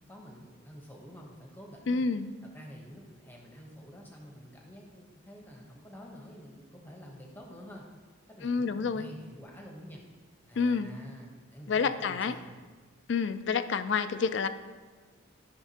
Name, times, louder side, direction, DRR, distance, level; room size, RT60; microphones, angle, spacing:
voice 1, 0.1-2.1 2.5-7.8 8.3-10.0 10.5-12.5, equal, 10° left, 0 dB, 0.9 m, -48 dB
voice 2, 1.9-2.4 8.4-9.1 10.6-10.9 11.7-12.4 13.1-14.5, left 5 dB, 65° left, 12 dB, 0.4 m, -28 dB
12.5 x 5.7 x 2.9 m, 1.4 s
head